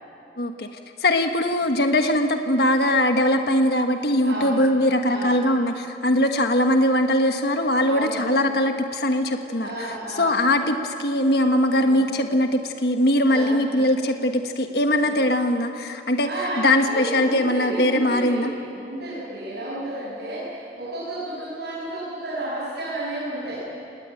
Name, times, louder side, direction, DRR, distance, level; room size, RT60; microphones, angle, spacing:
voice 1, 0.4-0.7 1.0-9.9 10.2-16.3 16.6-18.5, left 1 dB, 65° left, 5 dB, 1.5 m, -21 dB
voice 2, 4.2-4.6 5.0-5.3 7.8-8.2 9.5-10.3 11.8-12.0 13.2-13.6 15.0-15.1 16.2-23.6, right 1 dB, 70° right, -8 dB, 7.5 m, -32 dB
27.5 x 19.5 x 9.2 m, 2.8 s
head